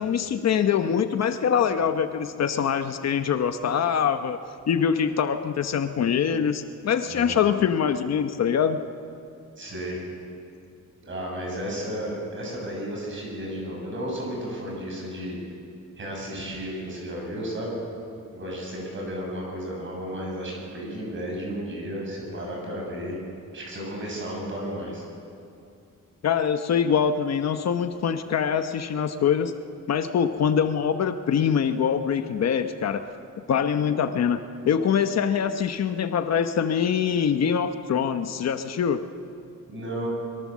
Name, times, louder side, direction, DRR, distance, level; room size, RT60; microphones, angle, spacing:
voice 1, 0.0-4.4 4.7-8.8 26.2-29.5 29.9-33.0 33.5-39.0, left 7 dB, 55° left, 8 dB, 1.0 m, -24 dB
voice 2, 7.1-7.5 9.6-10.0 11.0-15.4 16.0-17.8 18.3-23.2 23.5-25.0 39.7-40.1, equal, 40° right, -2 dB, 7.7 m, -33 dB
24.5 x 22.5 x 7.4 m, 2.5 s
wide cardioid pair, 180°, 31 cm